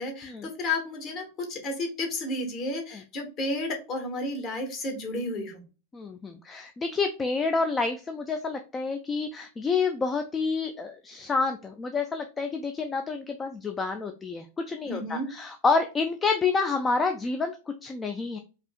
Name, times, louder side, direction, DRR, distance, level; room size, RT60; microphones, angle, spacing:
voice 1, 0.0-5.6 14.9-15.3, left 2 dB, 35° left, 3 dB, 1.3 m, -32 dB
voice 2, 5.9-17.6 17.8-18.4, left 4 dB, 15° left, 6 dB, 0.4 m, -28 dB
4.8 x 2.7 x 2.2 m, 0.32 s
figure-of-eight pair, 90°, 0 cm